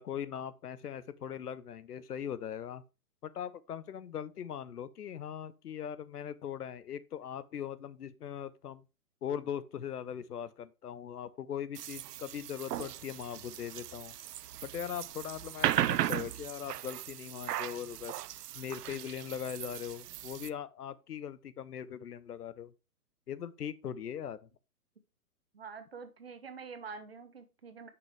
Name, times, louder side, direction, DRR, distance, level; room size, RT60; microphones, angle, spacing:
voice 1, 0.0-2.8 3.2-8.8 9.2-14.2 14.6-18.1 18.5-22.7 23.3-24.4, left 9 dB, 75° left, 0.9 m, -40 dB
sound 1, 11.8-20.5, right 12 dB, 85° right, 0.6 m, -37 dB
voice 2, 25.5-27.9, right 5 dB, 40° right, 0.8 m, -46 dB
6.2 x 6.2 x 3.2 m
hypercardioid pair, 180°, 46 cm